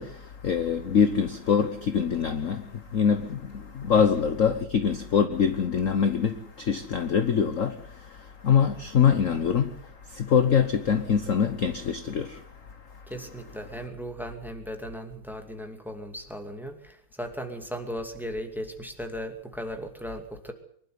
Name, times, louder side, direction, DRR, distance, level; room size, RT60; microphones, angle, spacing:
voice 1, 0.0-13.1, left 7 dB, 50° left, 1.1 m, -24 dB
voice 2, 13.1-20.5, equal, ahead, 2.3 m, -37 dB
24.0 x 12.0 x 9.6 m
omnidirectional pair, 2.3 m